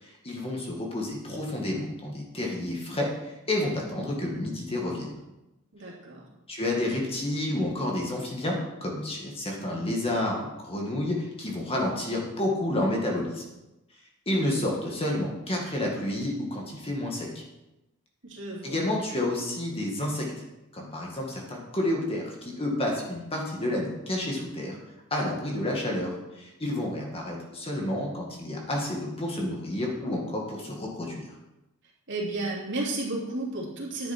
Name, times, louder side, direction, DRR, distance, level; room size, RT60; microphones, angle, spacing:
voice 1, 0.0-5.1 6.5-13.4 14.3-17.4 18.6-20.3 20.7-24.8 25.1-31.2, left 1 dB, 25° left, -1 dB, 2.1 m, -30 dB
voice 2, 5.7-6.3 18.2-18.8 32.1-34.1, right 2 dB, 55° right, -3 dB, 3.0 m, -32 dB
10.5 x 9.3 x 4.5 m, 0.96 s
head